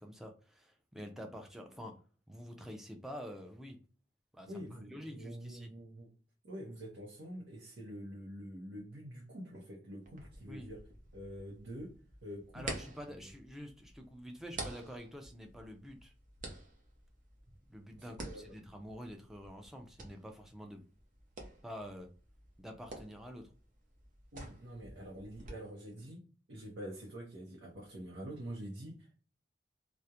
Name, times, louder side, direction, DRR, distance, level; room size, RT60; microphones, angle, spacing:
voice 1, 0.0-2.0 2.3-3.8 4.3-5.7 10.5-10.7 12.5-16.1 17.7-20.8 21.6-22.1 22.6-23.5, equal, ahead, 2 dB, 0.4 m, -47 dB
voice 2, 4.5-6.1 6.4-10.8 11.1-12.6 13.2-13.3 18.2-18.4 24.3-26.2 26.5-29.2, equal, 90° right, -3 dB, 0.6 m, -46 dB
sound 1, 10.0-25.5, right 2 dB, 50° right, 0.6 m, -50 dB
2.3 x 2.1 x 2.7 m, 0.38 s
head